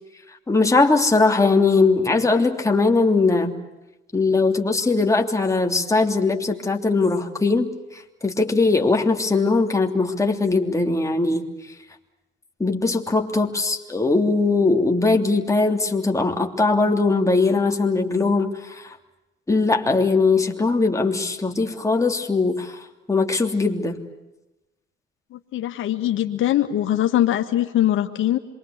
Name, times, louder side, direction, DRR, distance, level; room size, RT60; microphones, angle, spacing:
voice 1, 0.3-3.6 4.1-11.4 12.6-19.0 19.5-24.0, left 3 dB, 15° left, 3 dB, 3.2 m, -20 dB
voice 2, 25.3-28.4, left 12 dB, 80° left, 6 dB, 1.9 m, -22 dB
27.5 x 24.0 x 8.3 m, 0.97 s
cardioid pair, 90°, 20 cm